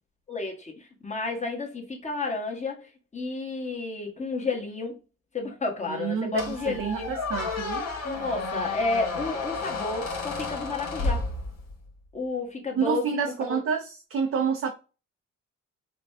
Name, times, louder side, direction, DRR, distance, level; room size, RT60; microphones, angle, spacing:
voice 1, 0.3-4.9 5.3-7.1 8.0-11.2 12.1-13.6, left 3 dB, 25° left, 1.5 m, -31 dB
voice 2, 5.9-7.9 12.8-14.7, right 6 dB, 45° right, 0.6 m, -28 dB
Squeak, 6.4-11.9, left 3 dB, 60° left, 1.5 m, -32 dB
4.8 x 2.3 x 3.4 m
cardioid pair, 90°, 30 cm